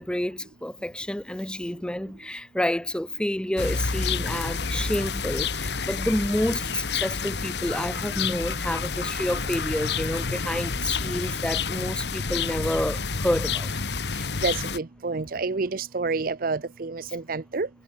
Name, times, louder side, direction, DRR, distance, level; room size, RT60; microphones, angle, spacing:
voice 1, 0.0-13.7, left 1 dB, 5° left, 0.5 m, -29 dB
sound 1, 3.6-14.8, left 5 dB, 70° left, 1.4 m, -29 dB
voice 2, 14.4-17.7, right 4 dB, 55° right, 0.7 m, -28 dB
head